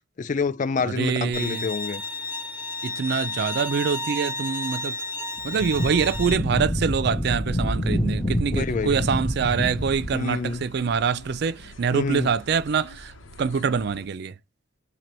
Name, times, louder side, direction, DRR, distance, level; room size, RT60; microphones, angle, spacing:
voice 1, 0.2-2.0 8.5-9.0 10.1-10.6 11.9-12.3, left 4 dB, 40° left, 0.3 m, -27 dB
voice 2, 0.8-1.7 2.8-5.0 5.4-13.1 13.4-14.3, right 6 dB, 55° right, 0.4 m, -25 dB
Bowed string instrument, 1.3-6.4, left 2 dB, 10° right, 0.9 m, -32 dB
Wind, 5.4-10.2, equal, 15° left, 0.7 m, -27 dB
sound 1, 8.8-14.1, left 1 dB, 80° left, 0.9 m, -46 dB
3.9 x 2.9 x 3.0 m
head